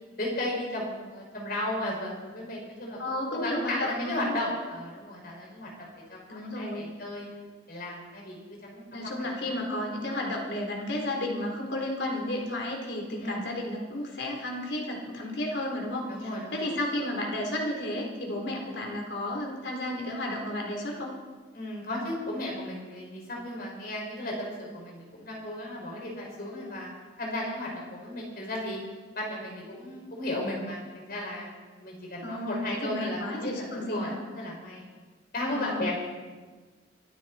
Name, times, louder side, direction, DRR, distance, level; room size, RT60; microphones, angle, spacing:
voice 1, 0.2-7.3 7.7-9.6 13.2-13.4 16.1-16.7 21.5-26.9 27.2-28.8 29.1-34.9 35.3-35.9, left 1 dB, 55° left, -2 dB, 6.2 m, -35 dB
voice 2, 3.0-4.4 6.3-6.9 8.9-21.1 32.2-34.1 35.5-35.9, left 1 dB, 70° left, 0 dB, 4.1 m, -32 dB
25.0 x 12.5 x 4.5 m, 1.4 s
head